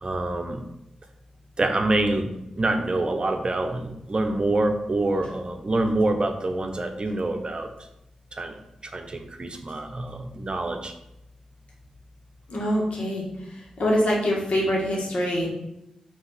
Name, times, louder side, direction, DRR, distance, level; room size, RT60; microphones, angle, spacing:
voice 1, 0.0-0.6 1.6-2.3 2.6-7.7 8.3-8.5 8.8-10.9, right 2 dB, 45° right, 6 dB, 0.8 m, -26 dB
voice 2, 12.5-13.3 13.8-15.5, equal, 65° left, -3 dB, 2.0 m, -24 dB
5.5 x 3.4 x 5.7 m, 0.86 s
supercardioid pair, 40°, 2 cm